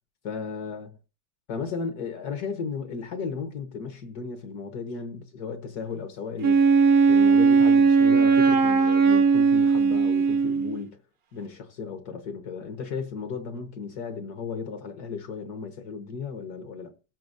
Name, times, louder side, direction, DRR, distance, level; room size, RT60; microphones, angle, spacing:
voice 1, 0.2-0.9 1.5-6.6 7.1-11.0 11.3-16.9, left 5 dB, 65° left, 1.6 m, -35 dB
Wind instrument woodwind instrument, 6.4-10.8, right 5 dB, 55° right, 0.7 m, -18 dB
17.5 x 7.5 x 2.6 m
omnidirectional pair, 1.8 m